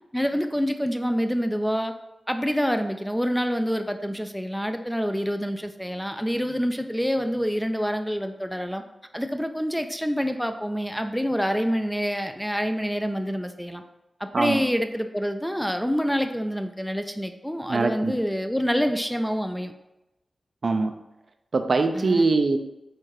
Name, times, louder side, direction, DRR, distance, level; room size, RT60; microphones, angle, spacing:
voice 1, 0.1-1.9 2.3-8.8 9.1-13.8 14.2-19.7 21.9-22.2, equal, ahead, 7 dB, 0.4 m, -27 dB
voice 2, 17.7-18.1 20.6-20.9 21.5-22.6, right 3 dB, 60° right, 6 dB, 0.4 m, -22 dB
4.4 x 2.4 x 4.7 m, 0.94 s
cardioid pair, 65°, 0 cm